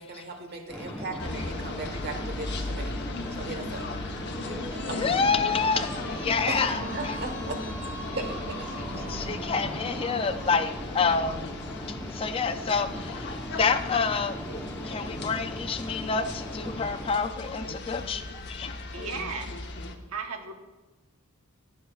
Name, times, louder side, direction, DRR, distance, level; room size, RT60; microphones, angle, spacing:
voice 1, 0.0-2.9 3.3-3.9 4.9-5.3 6.5-7.6 8.1-9.1, right 2 dB, 50° right, 5 dB, 1.1 m, -37 dB
sound 1, 0.7-17.1, equal, 10° left, 0.9 m, -39 dB
sound 2, 1.2-20.0, left 2 dB, 50° left, 0.9 m, -37 dB
sound 3, 4.4-10.7, left 1 dB, 10° right, 3.5 m, -40 dB
voice 2, 5.0-7.1 9.1-11.4 12.1-14.4 14.8-18.8, left 5 dB, 25° left, 9 dB, 0.3 m, -28 dB
voice 3, 18.9-19.5 20.1-20.5, right 4 dB, 80° right, 4 dB, 1.0 m, -35 dB
19.0 x 6.4 x 2.4 m, 1.1 s
head